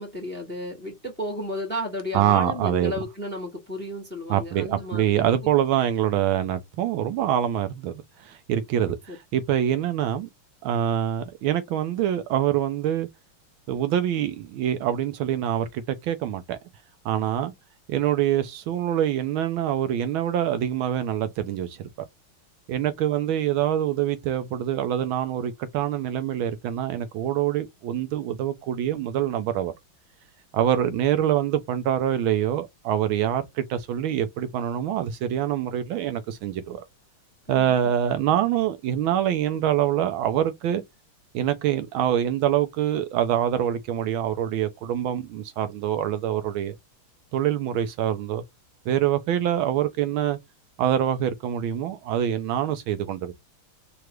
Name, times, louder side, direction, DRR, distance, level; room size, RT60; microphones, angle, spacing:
voice 1, 0.0-5.3 8.8-9.2 37.5-37.9, left 1 dB, 5° left, 0.9 m, -33 dB
voice 2, 2.1-2.9 4.3-7.9 8.2-10.3 10.6-13.1 13.7-16.6 17.0-17.5 17.9-21.9 22.7-29.7 30.5-36.8 37.5-40.8 41.3-46.7 47.3-48.4 48.9-50.4 50.8-53.3, right 10 dB, 75° right, 1.4 m, -25 dB
4.7 x 2.4 x 3.1 m
omnidirectional pair, 2.4 m